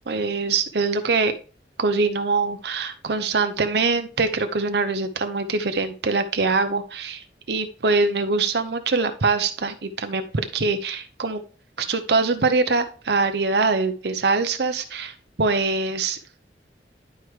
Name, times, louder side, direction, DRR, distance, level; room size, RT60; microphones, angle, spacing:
voice 1, 0.1-1.3 1.8-11.4 11.8-16.4, right 4 dB, 70° right, 8 dB, 0.8 m, -23 dB
11.0 x 4.6 x 3.2 m, 0.37 s
head